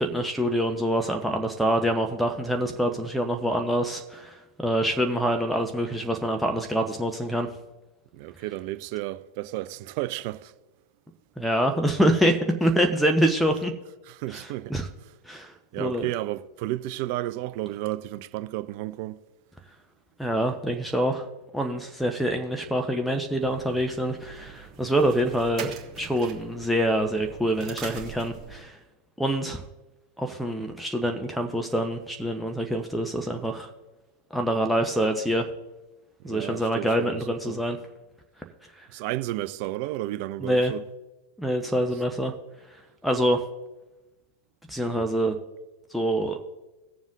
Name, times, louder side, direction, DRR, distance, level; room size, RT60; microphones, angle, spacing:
voice 1, 0.0-7.5 11.4-13.7 14.3-14.9 15.3-16.1 20.2-21.2 21.5-25.7 26.0-28.8 29.2-29.6 30.2-33.7 34.3-35.5 36.2-37.8 38.8-38.9 40.4-40.7 41.4-42.3 43.0-43.4 44.7-45.3 45.9-46.4, right 1 dB, ahead, 0.8 m, -25 dB
voice 2, 8.1-10.5 14.1-14.9 15.7-19.2 36.2-37.2 37.4-37.6 38.9-40.8, right 16 dB, 45° right, 0.5 m, -32 dB
sound 1, 23.4-28.6, right 7 dB, 30° right, 1.6 m, -42 dB
18.0 x 7.2 x 2.5 m
figure-of-eight pair, 90°, 0 cm